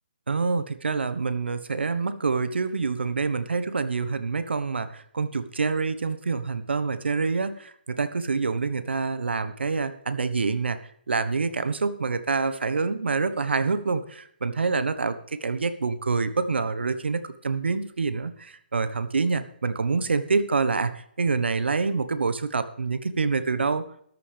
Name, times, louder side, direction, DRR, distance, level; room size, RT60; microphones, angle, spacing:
voice 1, 0.3-10.8 11.1-24.0, right 4 dB, 80° right, 12 dB, 1.3 m, -26 dB
13.5 x 12.0 x 3.5 m, 0.65 s
hypercardioid pair, 145°, 6 cm